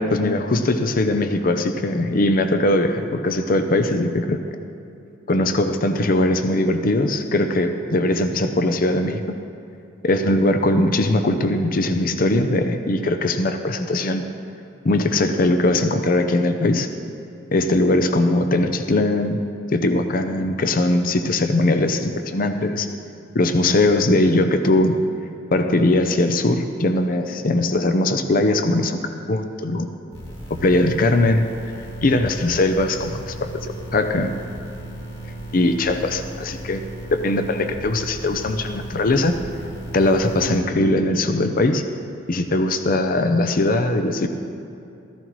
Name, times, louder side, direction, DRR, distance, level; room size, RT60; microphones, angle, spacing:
voice 1, 0.0-4.4 5.3-9.2 10.0-14.2 14.8-16.9 17.5-19.4 19.7-22.9 23.3-25.0 25.5-29.0 29.3-29.9 30.6-31.5 32.0-34.3 35.5-36.8 37.1-39.3 39.9-41.8 42.3-44.3, left 2 dB, 50° left, 8 dB, 0.6 m, -20 dB
sound 1, 30.1-40.6, right 1 dB, 30° left, 2.9 m, -35 dB
14.5 x 14.0 x 3.1 m, 2.7 s
head